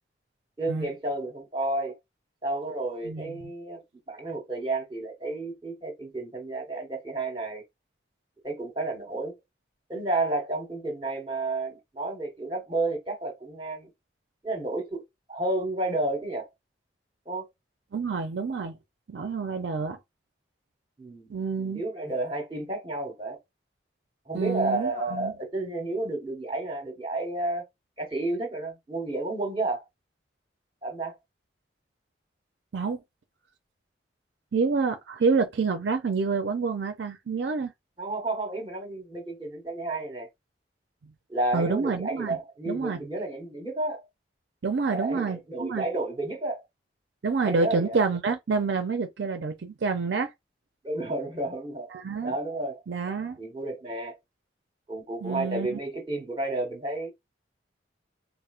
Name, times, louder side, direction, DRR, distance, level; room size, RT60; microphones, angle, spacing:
voice 1, 0.6-2.0 2.4-7.6 8.4-9.4 9.9-13.9 14.4-15.0 15.3-16.5 17.3-17.5 21.0-21.3 21.7-23.4 24.3-27.6 28.0-29.8 30.8-31.2 38.0-40.3 41.3-44.1 44.9-46.6 47.4-48.0 50.8-51.9 52.2-52.8 53.4-54.2 54.9-57.1, right 2 dB, 25° right, 1.0 m, -31 dB
voice 2, 3.0-3.4 17.9-18.8 19.1-20.0 21.3-21.8 24.3-25.3 32.7-33.0 34.5-37.7 41.5-42.4 42.7-43.0 44.6-45.9 47.2-50.3 51.9-52.4 52.9-53.4 55.2-55.8, right 4 dB, 70° right, 0.5 m, -28 dB
4.2 x 2.0 x 2.4 m
head